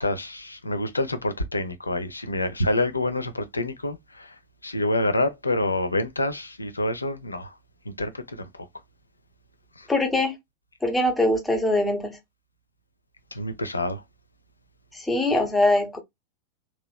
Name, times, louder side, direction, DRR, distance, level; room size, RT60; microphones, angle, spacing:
voice 1, 0.0-4.3 4.6-7.5 7.9-8.7 9.8-9.9 13.3-14.0, left 2 dB, 80° left, 0.6 m, -27 dB
voice 2, 9.9-10.4 10.8-12.2 14.9-16.0, left 1 dB, 10° left, 0.9 m, -22 dB
3.0 x 3.0 x 2.2 m
figure-of-eight pair, 90°, 0 cm